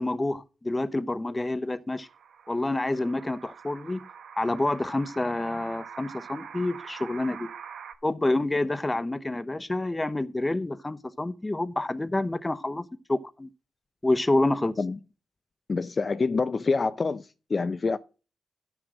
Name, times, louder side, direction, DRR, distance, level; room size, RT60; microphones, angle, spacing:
voice 1, 0.0-2.1 2.5-4.0 4.4-7.5 8.0-13.5 14.0-14.8, left 2 dB, 20° left, 1.0 m, -28 dB
sound 1, 1.9-7.9, right 7 dB, 80° right, 1.2 m, -45 dB
voice 2, 15.7-18.0, left 4 dB, 45° left, 0.6 m, -26 dB
11.0 x 6.3 x 6.1 m
cardioid pair, 60°, 0 cm